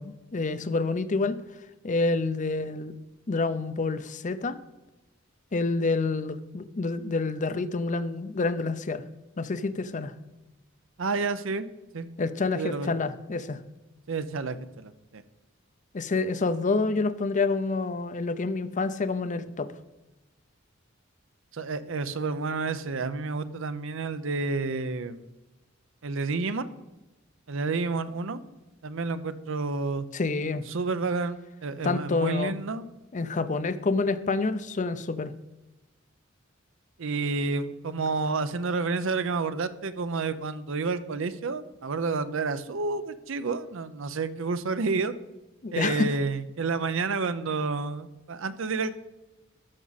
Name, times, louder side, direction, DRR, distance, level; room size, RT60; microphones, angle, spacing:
voice 1, 0.0-1.4 1.8-2.9 3.3-4.6 5.5-9.0 9.4-10.1 12.2-13.6 15.9-19.7 30.1-30.6 31.8-32.6 33.1-35.3 45.6-46.1, left 3 dB, 40° left, 13 dB, 0.6 m, -28 dB
voice 2, 11.0-11.7 11.9-12.1 12.5-12.9 14.1-15.2 21.5-25.2 26.0-26.7 27.5-28.4 28.8-30.1 30.7-32.9 37.0-45.1 45.7-48.9, right 4 dB, 70° right, 13 dB, 0.6 m, -30 dB
13.0 x 6.2 x 4.0 m, 1.1 s
head